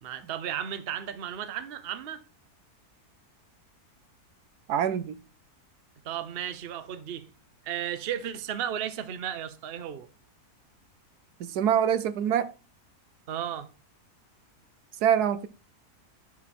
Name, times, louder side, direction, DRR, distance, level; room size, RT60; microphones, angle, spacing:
voice 1, 0.0-2.2 6.0-7.3 7.6-10.1 13.3-13.7, right 9 dB, 50° right, 0.8 m, -34 dB
voice 2, 4.7-5.2 11.4-12.5 15.0-15.5, right 9 dB, 80° right, 1.2 m, -25 dB
11.0 x 4.5 x 4.3 m
omnidirectional pair, 1.7 m